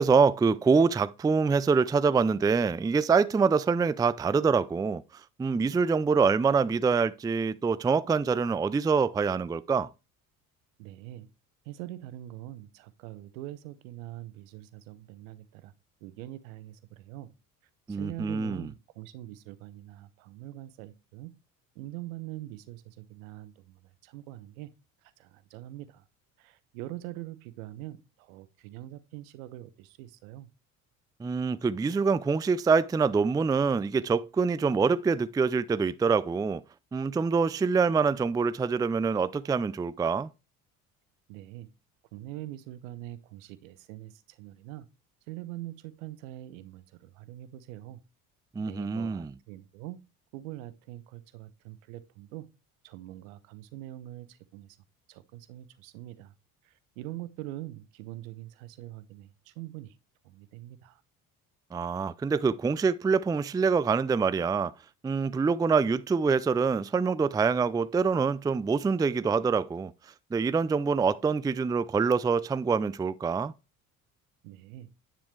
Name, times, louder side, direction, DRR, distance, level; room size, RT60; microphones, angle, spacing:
voice 1, 0.0-5.0 5.4-9.9 17.9-18.7 31.2-36.6 36.9-40.3 48.6-49.3 61.7-64.7 65.0-69.9 70.3-73.5, right 5 dB, 10° right, 0.4 m, -25 dB
voice 2, 10.8-11.3 11.6-15.7 16.0-17.3 17.9-21.3 21.7-24.7 25.0-26.0 26.4-30.5 41.3-41.7 42.1-44.9 45.3-48.0 48.6-50.0 50.3-52.5 52.8-54.8 55.1-56.3 56.6-60.0 60.2-61.0 74.4-74.9, right 15 dB, 65° right, 1.1 m, -43 dB
10.0 x 8.8 x 3.3 m
figure-of-eight pair, 55°, 43 cm